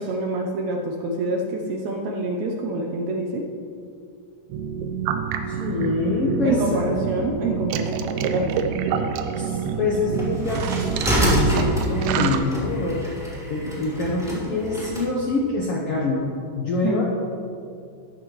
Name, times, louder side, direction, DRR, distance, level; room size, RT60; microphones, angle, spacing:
voice 1, 0.0-3.5 6.4-8.6 8.9-9.0 16.8-17.0, right 2 dB, 75° right, 2 dB, 1.8 m, -27 dB
sound 1, 4.5-12.4, right 7 dB, 90° right, 2.4 m, -27 dB
voice 2, 5.5-6.8 9.4-17.0, left 2 dB, 70° left, -3 dB, 1.4 m, -25 dB
sound 2, 10.1-15.1, right 1 dB, ahead, 2.3 m, -26 dB
13.5 x 11.0 x 3.1 m, 2.4 s
omnidirectional pair, 3.9 m